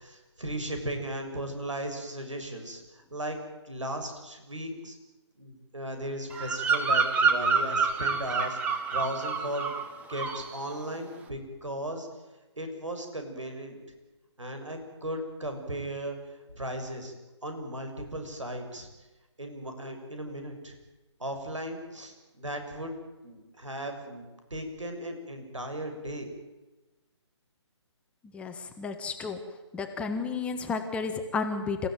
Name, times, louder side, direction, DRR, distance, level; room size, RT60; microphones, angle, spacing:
voice 1, 0.0-5.0 5.4-9.7 10.1-12.1 12.6-13.8 14.4-16.2 16.6-17.1 17.4-18.9 19.4-20.7 21.2-23.0 23.2-24.2 24.5-26.3, right 1 dB, 85° right, 5 dB, 6.8 m, -36 dB
Bird vocalization bird call bird song, 6.3-9.9 10.1-10.5, right 5 dB, 10° right, 1.5 m, -27 dB
voice 2, 28.3-29.4 29.7-31.9, left 4 dB, 10° left, 5 dB, 1.4 m, -32 dB
28.5 x 16.0 x 9.3 m, 1.1 s
figure-of-eight pair, 150°, 15 cm